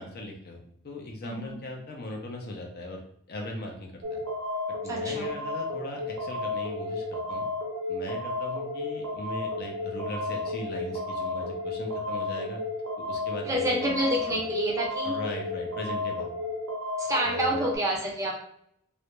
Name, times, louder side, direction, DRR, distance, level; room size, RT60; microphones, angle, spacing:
voice 1, 0.0-3.0 3.3-4.2 4.8-7.5 7.9-12.6 13.0-14.0 14.4-14.5 15.0-16.3 17.2-17.7, left 1 dB, 45° left, 1 dB, 0.5 m, -39 dB
voice 2, 1.2-1.6 4.9-5.4 13.4-15.2 17.0-18.4, right 1 dB, 15° right, -2 dB, 0.4 m, -28 dB
sound 1, 4.0-17.8, left 2 dB, 70° right, 0.5 m, -33 dB
2.4 x 2.1 x 2.9 m, 0.68 s
head